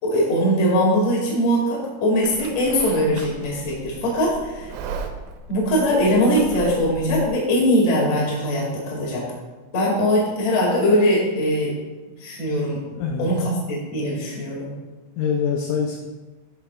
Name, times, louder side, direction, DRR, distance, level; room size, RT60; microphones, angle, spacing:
voice 1, 0.0-4.7 5.5-9.2 9.7-11.7 12.2-12.8 13.2-14.7, equal, 45° left, -4 dB, 2.2 m, -21 dB
Livestock farm animals working animals, 2.2-7.3, right 5 dB, 85° right, 3.4 m, -36 dB
voice 2, 12.8-13.3 15.2-16.0, left 6 dB, 80° left, 1 dB, 2.7 m, -25 dB
13.5 x 5.8 x 2.4 m, 1.2 s
omnidirectional pair, 6.0 m